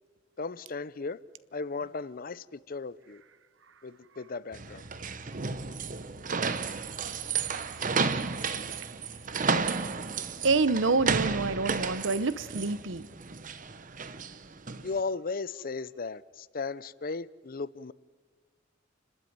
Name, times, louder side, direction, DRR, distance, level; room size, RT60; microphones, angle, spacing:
voice 1, 0.4-1.2 1.5-3.2 3.8-4.8 14.8-17.9, left 4 dB, 45° left, 0.6 m, -36 dB
sound 1, 4.5-14.9, right 5 dB, 45° right, 0.9 m, -32 dB
voice 2, 10.4-13.1, right 3 dB, 80° right, 0.9 m, -27 dB
30.0 x 13.0 x 9.4 m
head